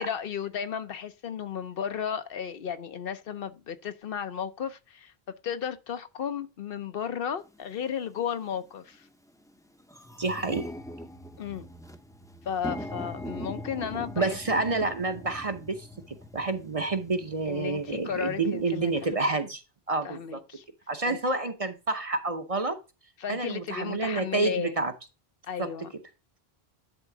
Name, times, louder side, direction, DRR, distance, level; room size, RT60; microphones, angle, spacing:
voice 1, 0.0-9.1 11.4-11.7 12.4-14.8 17.5-18.9 20.0-20.6 21.0-21.2 23.2-24.7 25.5-25.9, left 8 dB, 70° left, 0.9 m, -34 dB
sound 1, 7.5-7.6 8.4-8.6 9.0-9.1 9.4-19.1, left 1 dB, 5° left, 0.6 m, -42 dB
voice 2, 10.2-10.7 14.2-19.6 19.9-20.4 20.9-22.8 23.3-24.9 25.6-25.7, right 3 dB, 40° right, 0.8 m, -29 dB
11.0 x 3.6 x 4.8 m
omnidirectional pair, 1.0 m